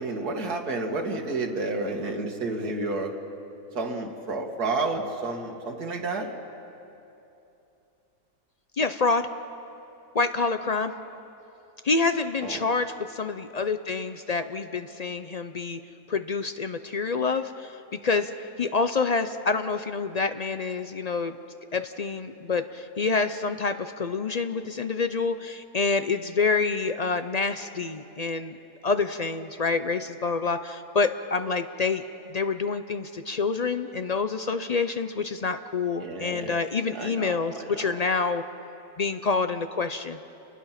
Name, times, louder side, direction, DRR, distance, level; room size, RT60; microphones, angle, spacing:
voice 1, 0.0-3.2 3.7-6.3 12.4-12.7 36.0-36.5 36.9-37.9, right 3 dB, 90° right, 2 dB, 2.3 m, -30 dB
voice 2, 8.8-9.3 10.1-10.9 11.8-15.8 16.1-21.4 21.7-28.6 28.8-32.0 32.3-38.4 39.0-40.2, left 4 dB, 65° left, 9 dB, 0.4 m, -27 dB
30.0 x 20.0 x 5.8 m, 2.9 s
omnidirectional pair, 1.6 m